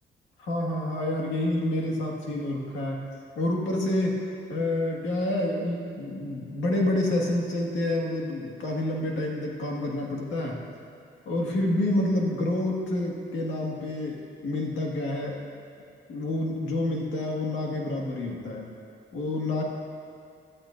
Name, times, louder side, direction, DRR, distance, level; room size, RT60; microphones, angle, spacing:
voice 1, 0.4-3.0 3.4-4.2 4.5-10.6 11.3-15.4 16.1-18.7 19.1-19.6, left 1 dB, 85° left, -1 dB, 1.8 m, -28 dB
17.0 x 12.0 x 2.6 m, 2.5 s
cardioid pair, 110°, 19 cm